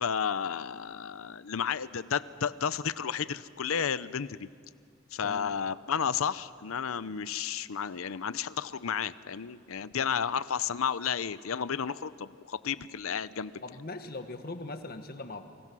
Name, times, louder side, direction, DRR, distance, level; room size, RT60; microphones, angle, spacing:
voice 1, 0.0-4.5 5.1-13.5, left 7 dB, 85° left, 15 dB, 0.6 m, -32 dB
voice 2, 13.6-15.4, left 2 dB, 45° left, 7 dB, 1.5 m, -40 dB
30.0 x 24.0 x 6.2 m, 2.1 s
head